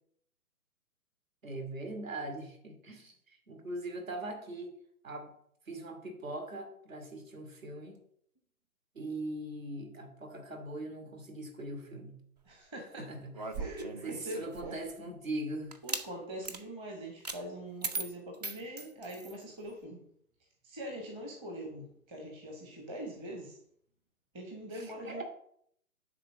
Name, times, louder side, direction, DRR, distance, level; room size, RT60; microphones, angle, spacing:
voice 1, 1.4-4.7 5.0-5.3 5.7-8.0 8.9-12.2 13.0-13.4 14.0-15.8 24.7-25.2, right 2 dB, 60° right, 4 dB, 2.7 m, -41 dB
voice 2, 12.4-13.1 13.6-14.5 15.8-20.0 20.6-23.6 24.3-25.2, right 1 dB, 10° right, 1 dB, 1.1 m, -43 dB
sound 1, 13.3-14.9 15.7-16.1 16.4-16.6 17.2-17.4 17.8-19.4, right 4 dB, 30° right, 0.6 m, -38 dB
10.0 x 4.0 x 7.1 m, 0.67 s
figure-of-eight pair, 130°, 45 cm